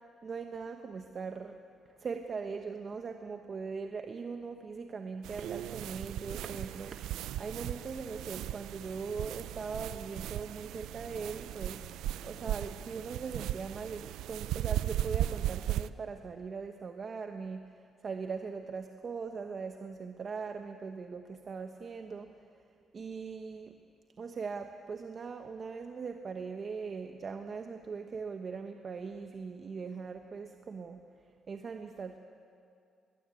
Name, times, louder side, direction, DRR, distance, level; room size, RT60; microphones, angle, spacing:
voice 1, 0.2-1.6 2.0-22.4 22.9-23.8 24.2-31.0 31.5-32.2, right 5 dB, 45° right, 6 dB, 1.1 m, -40 dB
sound 1, 5.2-15.9, right 13 dB, 90° right, 0.5 m, -37 dB
22.0 x 19.5 x 8.4 m, 2.4 s
cardioid pair, 90°, 0 cm